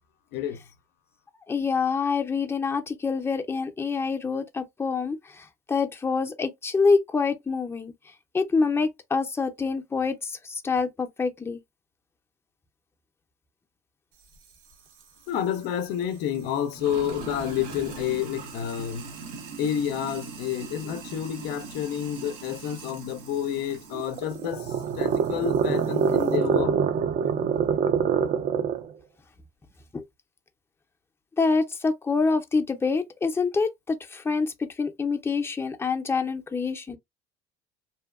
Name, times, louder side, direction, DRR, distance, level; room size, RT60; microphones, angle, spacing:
voice 1, 1.5-7.9 8.3-11.6 29.9-30.0 31.4-37.0, left 4 dB, 15° left, 0.5 m, -26 dB
Sink (filling or washing), 14.2-26.5, right 5 dB, 85° right, 0.7 m, -42 dB
voice 2, 15.3-19.2 19.6-26.7, left 10 dB, 70° left, 0.4 m, -29 dB
sound 1, 23.9-28.9, right 7 dB, 45° right, 0.4 m, -25 dB
2.7 x 2.1 x 2.3 m
supercardioid pair, 95°, 17 cm